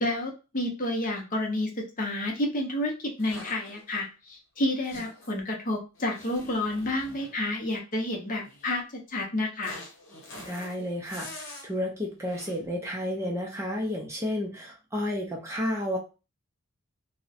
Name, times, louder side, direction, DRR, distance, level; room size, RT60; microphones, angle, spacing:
voice 1, 0.0-9.8, left 1 dB, 35° left, 0 dB, 0.6 m, -30 dB
sound 1, 3.2-4.0 4.8-5.4 5.9-7.4 8.4-8.7 9.6-11.7 12.3-12.6, left 1 dB, 60° left, 0.9 m, -45 dB
voice 2, 10.4-16.0, left 1 dB, 10° right, -1 dB, 0.4 m, -31 dB
2.4 x 2.0 x 2.6 m, 0.31 s
head